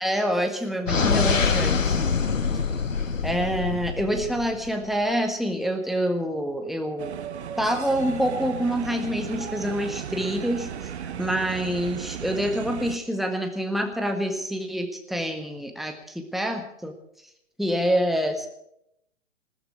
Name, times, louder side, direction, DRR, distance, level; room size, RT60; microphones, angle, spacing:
voice 1, 0.0-2.2 3.2-7.1 7.6-16.9 17.6-18.5, equal, ahead, 5 dB, 1.7 m, -27 dB
sound 1, 0.9-4.7, left 5 dB, 85° left, 1.4 m, -25 dB
sound 2, 7.0-13.0, right 8 dB, 60° right, 1.2 m, -35 dB
20.5 x 15.0 x 4.7 m, 0.76 s
figure-of-eight pair, 125°, 38 cm